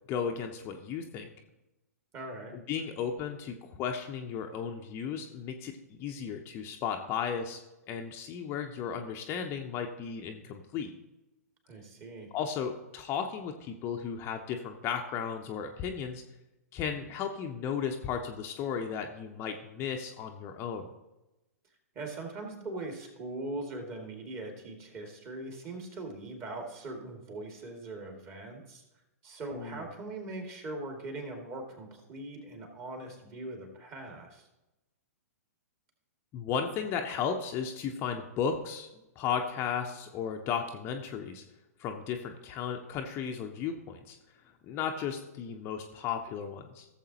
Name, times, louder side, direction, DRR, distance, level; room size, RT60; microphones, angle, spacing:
voice 1, 0.1-1.3 2.5-7.6 7.9-10.9 12.3-16.2 16.7-20.9 29.5-29.9 36.3-38.9 39.2-41.4 41.8-44.2 44.6-46.9, left 7 dB, 30° left, 4 dB, 0.7 m, -35 dB
voice 2, 2.1-2.6 11.7-12.3 21.9-28.8 29.2-34.5, right 2 dB, 30° right, 2 dB, 2.2 m, -41 dB
16.0 x 7.3 x 2.9 m, 0.97 s
figure-of-eight pair, 110°, 9 cm